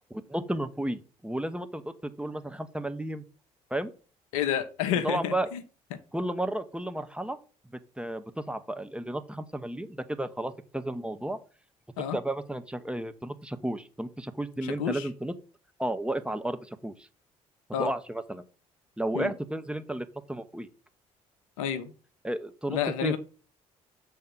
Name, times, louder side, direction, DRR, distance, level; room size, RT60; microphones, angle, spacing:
voice 1, 0.1-3.2 3.7-3.9 5.0-5.5 6.1-7.4 8.0-11.4 12.1-15.3 15.8-17.1 17.8-18.4 19.0-20.7 22.2-23.2, right 1 dB, 5° right, 0.8 m, -33 dB
voice 2, 4.3-5.6 5.9-6.0 12.0-12.2 14.6-15.1 17.7-17.9 19.1-19.3 21.6-21.9 22.7-23.2, left 9 dB, 75° left, 0.8 m, -30 dB
7.5 x 3.6 x 5.9 m
figure-of-eight pair, 45°, 18 cm